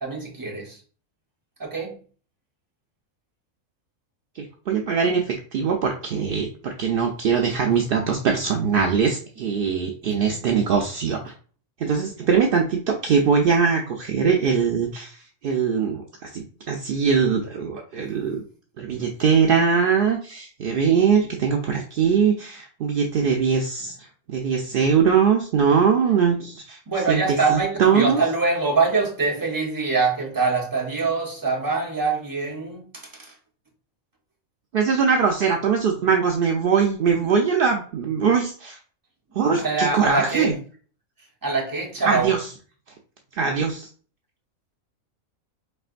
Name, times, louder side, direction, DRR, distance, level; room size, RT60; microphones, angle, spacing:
voice 1, 0.0-0.8 1.6-2.0 10.0-10.4 26.9-33.3 39.3-40.6 41.4-42.3, right 4 dB, 15° right, 0.9 m, -24 dB
voice 2, 4.4-11.3 11.8-18.4 18.8-26.8 27.1-28.2 34.7-38.8 39.4-40.5 42.0-42.5 43.3-43.9, right 6 dB, 65° right, 0.5 m, -22 dB
4.4 x 3.2 x 2.5 m
omnidirectional pair, 1.4 m